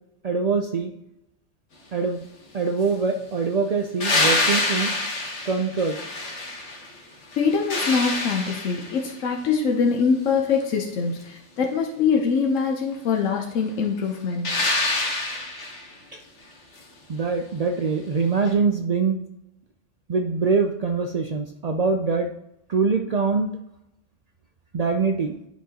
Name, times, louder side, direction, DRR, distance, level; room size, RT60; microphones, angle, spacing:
voice 1, 0.2-0.9 1.9-2.3 2.5-4.9 5.4-6.0 16.1-16.2 17.1-19.2 20.1-22.3 22.7-23.6 24.7-25.4, right 4 dB, 80° right, 4 dB, 0.3 m, -23 dB
sound 1, 4.0-6.9 7.3-9.1 14.4-15.9 18.5-18.6, left 2 dB, 70° left, 1.5 m, -26 dB
voice 2, 7.4-14.6, left 5 dB, 90° left, 2 dB, 1.1 m, -23 dB
10.5 x 4.6 x 2.8 m, 0.85 s
omnidirectional pair, 1.3 m